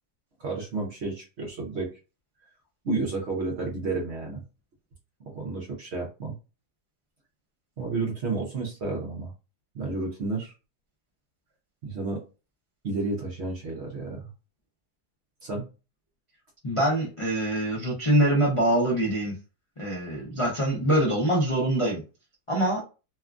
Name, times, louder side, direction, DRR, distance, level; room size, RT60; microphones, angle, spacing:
voice 1, 0.4-1.9 2.8-4.4 5.3-6.4 7.8-9.3 9.7-10.5 11.8-12.2 12.8-14.3 15.4-15.7, right 3 dB, 55° right, -1 dB, 0.8 m, -31 dB
voice 2, 16.6-19.3 19.8-22.0 22.5-22.8, right 1 dB, 55° left, -5 dB, 0.3 m, -24 dB
2.8 x 2.3 x 2.3 m, 0.32 s
omnidirectional pair, 1.7 m